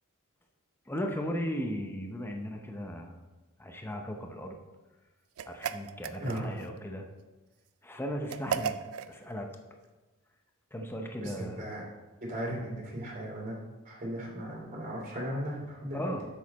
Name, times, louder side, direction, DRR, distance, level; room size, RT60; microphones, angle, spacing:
voice 1, 0.9-3.2 3.6-4.6 5.5-7.1 7.8-8.8 9.1-9.5 10.7-11.6 15.9-16.3, equal, 10° left, 3 dB, 0.7 m, -36 dB
sound 1, 5.4-6.7 8.3-9.1, right 7 dB, 80° right, 0.4 m, -35 dB
voice 2, 6.2-6.5 11.2-11.8 12.2-13.6 13.8-16.1, equal, 40° right, -2 dB, 2.8 m, -36 dB
7.6 x 6.4 x 4.1 m, 1.1 s
head